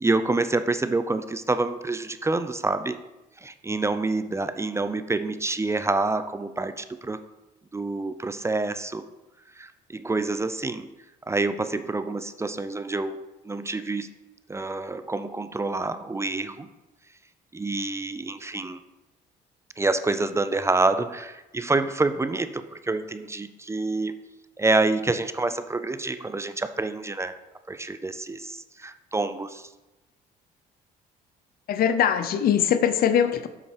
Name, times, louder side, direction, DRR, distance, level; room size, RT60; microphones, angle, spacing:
voice 1, 0.0-3.0 3.4-7.2 7.7-9.1 9.6-10.9 11.3-14.1 14.5-16.7 17.5-18.8 19.8-24.2 24.6-27.3 27.7-29.7, right 3 dB, 15° right, 11 dB, 0.4 m, -27 dB
voice 2, 31.7-33.5, left 9 dB, 65° left, 11 dB, 0.6 m, -21 dB
7.3 x 5.5 x 4.8 m, 1.0 s
cardioid pair, 85°, 17 cm